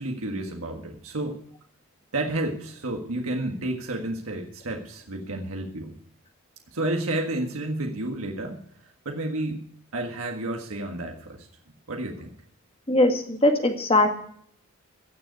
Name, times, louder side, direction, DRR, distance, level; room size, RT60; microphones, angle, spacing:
voice 1, 0.0-1.4 2.1-5.9 6.7-8.6 9.0-9.6 9.9-11.5 11.9-12.3, right 1 dB, 75° right, 2 dB, 1.7 m, -31 dB
voice 2, 12.9-14.1, left 1 dB, 25° left, 4 dB, 2.0 m, -20 dB
16.5 x 6.8 x 8.4 m, 0.65 s
head